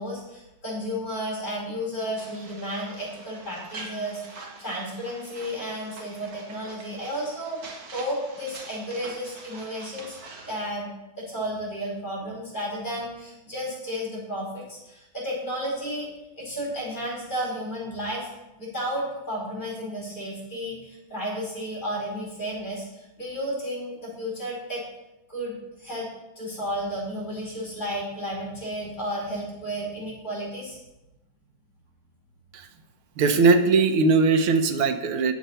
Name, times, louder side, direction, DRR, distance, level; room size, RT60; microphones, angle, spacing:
voice 1, 0.0-7.6 7.9-10.2 10.5-10.9 11.2-16.1 16.4-18.3 18.6-24.8 25.3-26.1 26.4-30.8, equal, 20° left, -4 dB, 4.7 m, -32 dB
sound 1, 2.2-10.7, right 3 dB, 50° right, 1.7 m, -45 dB
voice 2, 33.2-35.3, right 4 dB, 85° right, 7 dB, 1.7 m, -20 dB
9.1 x 7.2 x 5.5 m, 0.96 s
omnidirectional pair, 2.3 m